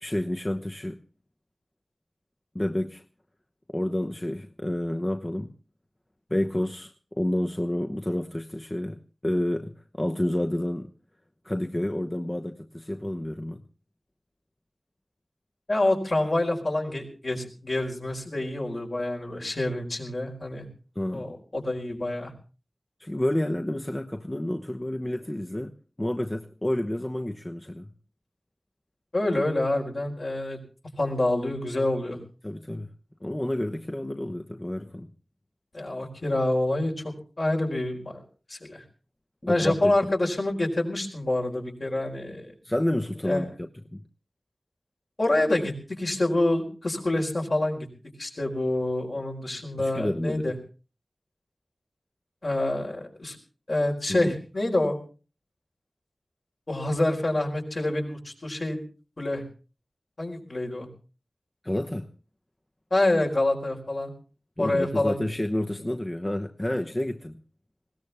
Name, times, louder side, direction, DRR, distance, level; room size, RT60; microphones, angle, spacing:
voice 1, 0.0-1.0 2.5-3.0 3.7-5.5 6.3-9.7 10.0-10.9 11.4-13.6 21.0-21.3 23.0-25.7 26.0-27.9 32.4-32.9 33.2-35.1 39.4-40.1 42.6-44.0 49.8-50.5 54.1-54.4 61.6-62.1 64.6-67.4, left 1 dB, 25° left, 0.9 m, -29 dB
voice 2, 15.7-20.6 21.1-22.3 29.1-30.6 31.0-32.2 35.7-38.2 38.5-38.8 39.5-42.5 43.3-43.5 45.2-47.9 48.2-50.5 52.4-53.4 53.7-55.0 56.7-58.8 59.2-59.4 60.2-60.9 62.9-64.1 64.6-65.2, left 1 dB, 60° left, 4.5 m, -27 dB
20.5 x 17.0 x 3.5 m
wide cardioid pair, 50°, 0 cm